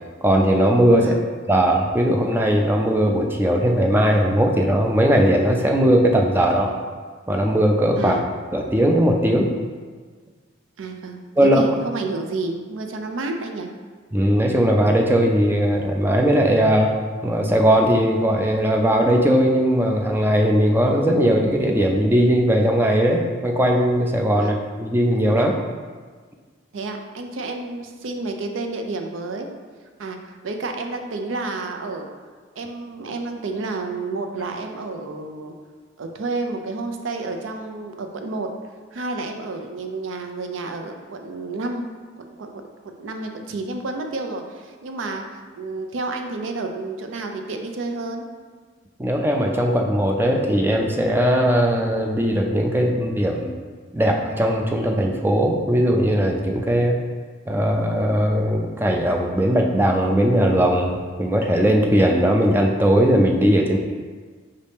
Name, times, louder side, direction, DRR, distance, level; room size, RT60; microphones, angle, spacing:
voice 1, 0.2-1.2 1.5-6.7 7.3-8.2 8.5-9.5 11.4-11.6 14.1-16.9 17.2-25.6 49.0-53.5 53.9-57.0 57.5-63.8, equal, 10° right, 1 dB, 0.4 m, -19 dB
voice 2, 8.0-8.3 10.8-13.7 24.3-24.6 26.7-29.5 30.0-32.1 32.6-35.5 36.0-38.5 38.9-41.9 42.2-42.5 43.0-48.3, right 3 dB, 80° right, 4 dB, 0.5 m, -30 dB
5.1 x 2.7 x 3.4 m, 1.5 s
head